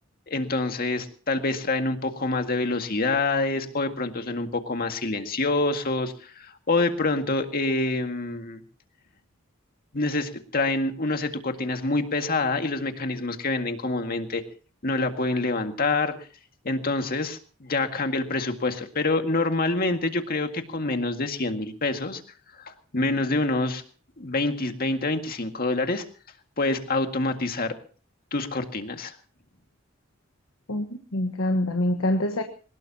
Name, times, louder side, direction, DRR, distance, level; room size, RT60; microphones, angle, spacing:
voice 1, 0.3-8.6 9.9-14.4 14.8-16.1 16.6-22.2 22.6-23.8 24.2-26.0 26.6-27.7 28.3-29.2, left 2 dB, 50° left, 6 dB, 2.0 m, -26 dB
voice 2, 30.7-32.4, left 1 dB, 90° left, 6 dB, 1.4 m, -25 dB
22.5 x 19.5 x 2.9 m, 0.38 s
head